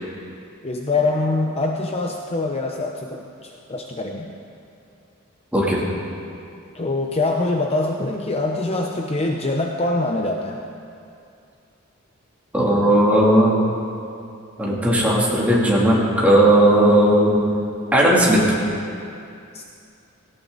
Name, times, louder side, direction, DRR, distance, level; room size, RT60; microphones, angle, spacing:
voice 1, 0.6-4.3 6.7-10.6 19.5-19.6, left 2 dB, 30° left, 2 dB, 0.8 m, -24 dB
voice 2, 12.5-13.6 14.6-17.4 17.9-18.4, right 1 dB, 5° right, -6 dB, 2.9 m, -16 dB
17.5 x 17.5 x 4.1 m, 2.5 s
head